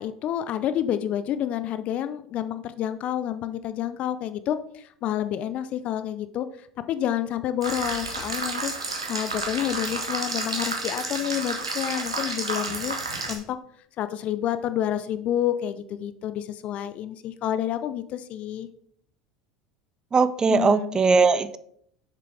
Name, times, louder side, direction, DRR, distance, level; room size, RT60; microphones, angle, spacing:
voice 1, 0.0-6.5 6.9-12.9 13.3-13.6 14.0-18.7 20.5-21.0, left 11 dB, 50° left, 12 dB, 0.6 m, -29 dB
sound 1, 7.6-13.3, right 3 dB, 90° right, 1.5 m, -31 dB
voice 2, 20.1-21.6, right 4 dB, 25° right, 14 dB, 0.5 m, -20 dB
7.5 x 6.7 x 3.4 m, 0.66 s
hypercardioid pair, 75°, 3 cm